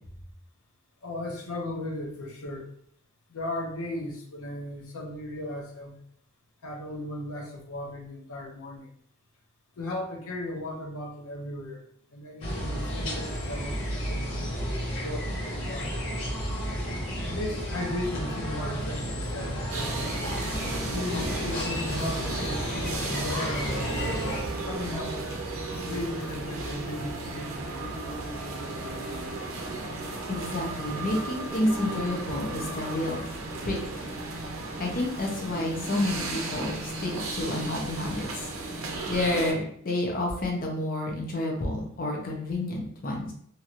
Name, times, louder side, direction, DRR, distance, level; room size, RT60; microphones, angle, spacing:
voice 1, 1.0-2.7 3.3-6.0 6.6-8.9 9.8-11.8 12.1-16.0 17.2-20.0 20.9-24.3 24.7-25.4 25.9-27.9, left 1 dB, 85° left, 0 dB, 0.6 m, -36 dB
sound 1, 12.4-24.4, equal, 65° left, 1.2 m, -32 dB
sound 2, 19.7-39.5, right 2 dB, 65° right, 0.6 m, -34 dB
voice 2, 30.3-33.2 33.6-33.8 34.8-38.4 39.1-43.3, left 1 dB, 40° left, 0 dB, 0.6 m, -29 dB
2.9 x 2.7 x 2.4 m, 0.64 s
head